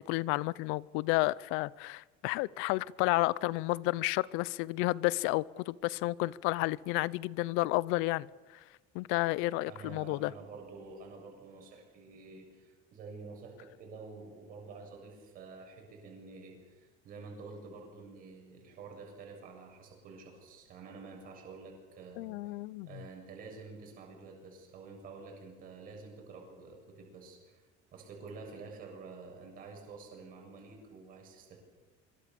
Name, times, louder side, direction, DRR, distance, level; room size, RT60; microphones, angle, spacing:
voice 1, 0.1-8.3 8.9-10.3 22.2-23.0, left 20 dB, 80° left, 0.7 m, -31 dB
voice 2, 9.6-22.4 22.8-27.6 27.9-31.6, right 4 dB, 45° right, 7.4 m, -49 dB
25.0 x 24.0 x 7.0 m
cardioid pair, 180°, 21 cm